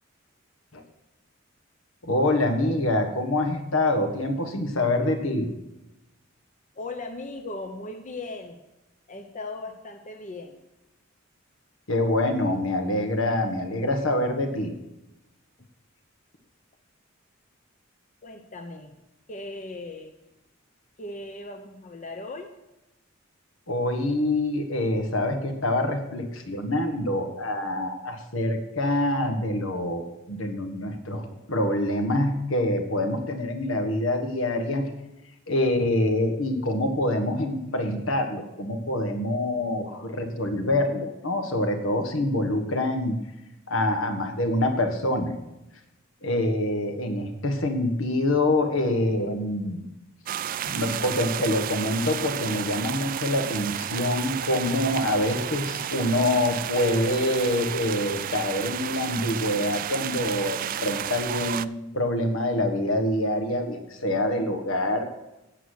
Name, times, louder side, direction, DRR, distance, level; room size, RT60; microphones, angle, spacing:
voice 1, 2.0-5.5 11.9-14.7 23.7-34.9 35.5-43.1 43.7-45.3 46.2-49.8 50.6-65.1, left 1 dB, 75° left, 6 dB, 1.5 m, -26 dB
voice 2, 6.8-8.6 9.1-10.6 12.5-12.7 15.6-15.7 18.2-18.9 19.3-20.1 21.0-22.5, left 2 dB, 40° left, 3 dB, 0.9 m, -38 dB
sound 1, 50.3-61.7, right 10 dB, 45° right, 0.3 m, -32 dB
9.0 x 8.1 x 6.4 m, 0.96 s
head